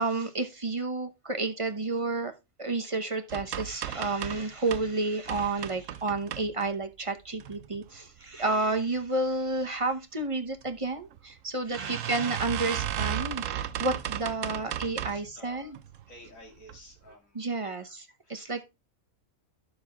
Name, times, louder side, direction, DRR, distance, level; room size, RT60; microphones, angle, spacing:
voice 1, 0.0-2.3 2.6-15.8 17.3-18.0 18.3-18.6, right 3 dB, 25° right, 0.9 m, -31 dB
sound 1, 3.3-4.9 5.3-6.9 7.4-8.0 8.4-8.8 9.1-9.2 9.5-9.6 10.6-10.7 11.1-11.2 11.8-15.3 15.8-16.2 16.6-16.8 17.1-17.2, right 11 dB, 75° right, 1.0 m, -35 dB
voice 2, 11.6-12.3 14.5-14.6 15.0-15.8 16.1-17.7 18.2-18.5, left 1 dB, 90° left, 3.1 m, -52 dB
11.0 x 7.0 x 3.5 m
omnidirectional pair, 1.4 m